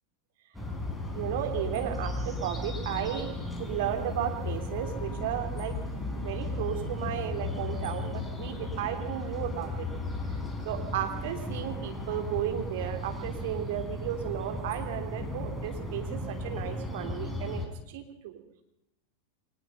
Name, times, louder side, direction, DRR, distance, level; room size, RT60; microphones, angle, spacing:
sound 1, 0.5-17.7, left 2 dB, 5° left, 4.3 m, -35 dB
voice 1, 1.1-3.3 3.6-5.7 6.1-9.9 10.6-17.6 17.9-18.4, right 11 dB, 55° right, 6 dB, 3.3 m, -34 dB
23.0 x 19.5 x 5.8 m, 0.88 s
figure-of-eight pair, 90°, 0 cm